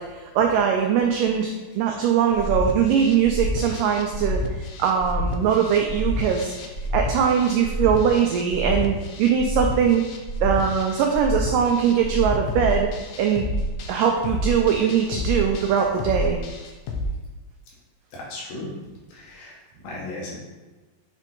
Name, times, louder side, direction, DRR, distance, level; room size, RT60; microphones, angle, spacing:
voice 1, 0.0-4.4 4.8-6.5 6.9-10.0 10.4-12.9 13.2-13.4 13.9-16.4, right 7 dB, 90° right, 2 dB, 1.9 m, -21 dB
sound 1, 2.3-17.1, left 1 dB, 90° left, 1.7 m, -29 dB
voice 2, 18.1-18.7 19.1-20.4, left 2 dB, 70° left, -4 dB, 3.0 m, -36 dB
7.5 x 3.6 x 3.7 m, 1.2 s
omnidirectional pair, 4.4 m